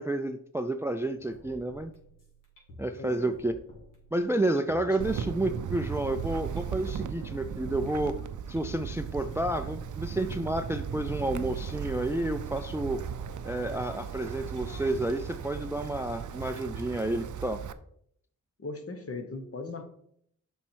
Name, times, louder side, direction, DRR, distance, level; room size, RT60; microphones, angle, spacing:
voice 1, 0.0-1.9 2.8-3.5 4.1-8.2 8.5-13.0 13.4-17.6, right 1 dB, 10° right, 9 dB, 0.3 m, -30 dB
sound 1, 0.9-16.9, left 1 dB, 75° left, 3.0 m, -51 dB
voice 2, 3.0-3.4 4.8-5.4 18.6-19.9, left 3 dB, 45° left, 6 dB, 1.1 m, -39 dB
Wind, 5.0-17.7, right 8 dB, 65° right, 0.5 m, -37 dB
7.3 x 5.5 x 4.5 m, 0.69 s
wide cardioid pair, 120°, 32 cm